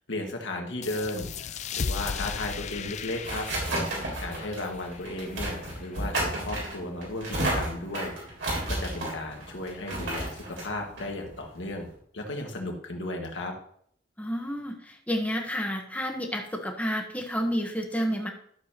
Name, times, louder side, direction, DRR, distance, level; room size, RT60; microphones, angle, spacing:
voice 1, 0.1-3.5 4.0-8.1 8.7-11.9 12.1-13.5, left 2 dB, 90° left, 2 dB, 1.7 m, -35 dB
sound 1, 0.8-6.0, left 6 dB, 40° left, 0.4 m, -36 dB
sound 2, 2.6-11.9, right 1 dB, 90° right, 3.3 m, -33 dB
voice 2, 14.2-18.3, equal, 10° left, 2 dB, 1.1 m, -30 dB
12.5 x 6.7 x 2.9 m, 0.65 s
head